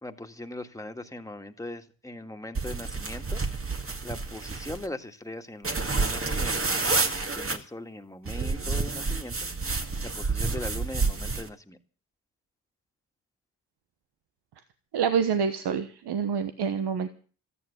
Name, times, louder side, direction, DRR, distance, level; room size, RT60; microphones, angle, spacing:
voice 1, 0.0-3.4 4.0-6.7 7.2-9.3 10.0-11.8, left 1 dB, 10° left, 5 dB, 2.1 m, -40 dB
sound 1, 2.5-4.9 5.6-7.6 8.3-11.5, right 3 dB, 30° right, 2.1 m, -29 dB
voice 2, 14.9-17.1, right 6 dB, 70° right, 10 dB, 1.3 m, -27 dB
14.0 x 9.8 x 8.2 m, 0.41 s
supercardioid pair, 50°, 42 cm